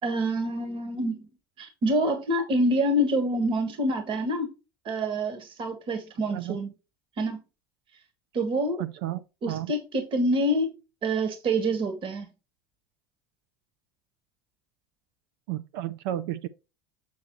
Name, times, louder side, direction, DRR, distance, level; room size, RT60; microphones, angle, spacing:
voice 1, 0.0-1.2 1.6-4.5 4.8-6.7 7.2-7.4 8.3-8.8 9.4-10.7 11.0-12.3, right 1 dB, 40° right, 1.7 m, -26 dB
voice 2, 8.8-9.2 9.5-9.7 15.5-16.5, right 13 dB, 70° right, 0.5 m, -32 dB
6.9 x 6.4 x 3.1 m
hypercardioid pair, 80°, 13 cm